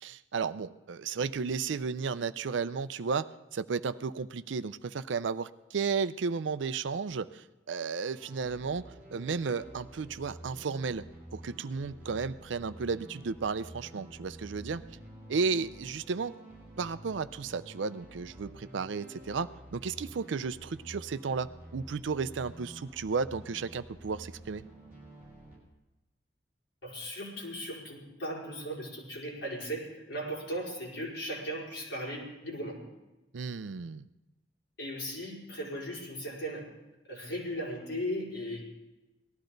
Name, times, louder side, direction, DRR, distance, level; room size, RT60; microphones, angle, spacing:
voice 1, 0.0-14.8 15.3-16.4 16.8-24.6 33.3-34.1, right 5 dB, 85° right, 14 dB, 0.5 m, -33 dB
sound 1, 8.1-25.6, right 1 dB, 10° right, 5.6 m, -50 dB
voice 2, 26.8-32.8 34.8-36.6 37.1-38.6, equal, 80° left, -5 dB, 5.0 m, -37 dB
18.5 x 13.0 x 3.9 m, 1.0 s
head